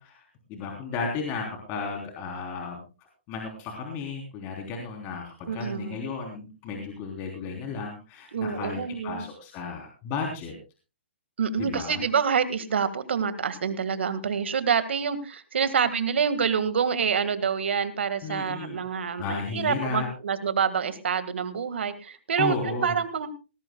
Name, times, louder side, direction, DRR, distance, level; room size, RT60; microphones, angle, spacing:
voice 1, 0.0-2.8 3.3-10.5 11.6-12.0 18.2-18.8 19.2-20.1 22.4-22.9, left 4 dB, 30° left, 1 dB, 3.6 m, -34 dB
voice 2, 5.5-6.0 8.3-9.2 11.4-23.3, right 6 dB, 70° right, 12 dB, 1.9 m, -27 dB
18.5 x 18.0 x 2.3 m, 0.31 s
hypercardioid pair, 135°, 6 cm